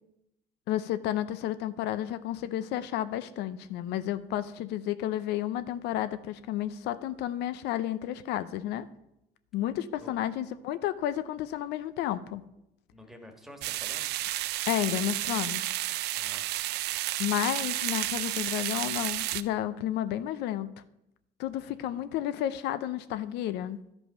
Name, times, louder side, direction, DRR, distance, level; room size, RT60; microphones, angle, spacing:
voice 1, 0.7-8.9 9.5-12.4 14.7-15.7 17.2-20.7 21.4-23.8, left 12 dB, 85° left, 13 dB, 0.5 m, -31 dB
voice 2, 12.9-14.1 16.1-16.5 21.6-22.0, equal, ahead, 4 dB, 1.5 m, -50 dB
sound 1, 13.6-19.4, right 15 dB, 80° right, 0.4 m, -32 dB
11.5 x 5.4 x 5.4 m, 0.85 s
cardioid pair, 110°, 17 cm